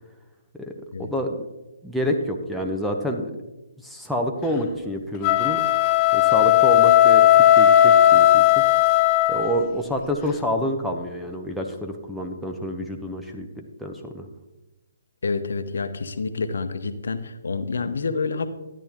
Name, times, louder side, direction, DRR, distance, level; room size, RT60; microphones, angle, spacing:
voice 1, 1.0-1.5 1.8-3.3 3.8-5.6 6.1-8.6 9.3-14.3, equal, ahead, 2 dB, 1.0 m, -28 dB
sound 1, 5.1-9.7, left 12 dB, 25° left, 0.5 m, -16 dB
voice 2, 15.2-18.5, left 4 dB, 65° left, 10 dB, 1.0 m, -28 dB
13.0 x 10.5 x 3.7 m, 1.0 s
figure-of-eight pair, 140°, 0 cm